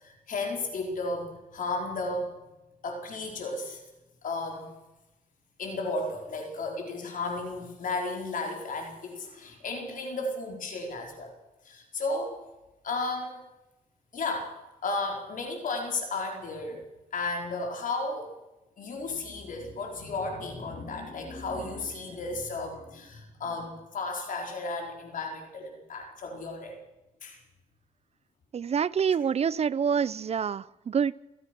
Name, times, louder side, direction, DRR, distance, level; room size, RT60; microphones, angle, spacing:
voice 1, 0.0-2.3 2.8-3.8 4.2-4.7 5.6-11.3 11.6-12.4 12.8-13.4 14.1-14.5 14.8-16.8 17.1-18.3 18.8-26.8 27.2-27.4, left 3 dB, 60° left, 2 dB, 4.7 m, -34 dB
voice 2, 28.5-31.2, right 7 dB, 40° right, 19 dB, 0.7 m, -27 dB
27.5 x 15.5 x 6.2 m, 1.0 s
cardioid pair, 95°, 16 cm